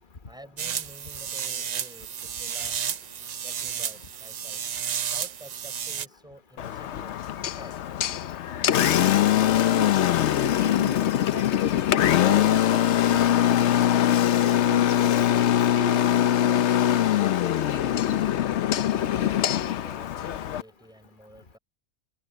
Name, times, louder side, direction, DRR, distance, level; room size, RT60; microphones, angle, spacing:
voice 1, 0.3-2.9 3.4-4.7 5.0-8.0 8.4-8.6 18.9-21.6, right 1 dB, 5° right, 4.5 m, -50 dB
sound 1, 0.6-6.1, right 8 dB, 75° right, 0.4 m, -32 dB
Engine, 6.6-20.6, left 11 dB, 60° left, 0.9 m, -22 dB
voice 2, 9.4-10.2 10.4-13.6 14.4-15.2 15.8-16.7 17.2-18.0, left 5 dB, 35° left, 1.3 m, -36 dB
omnidirectional pair, 1.5 m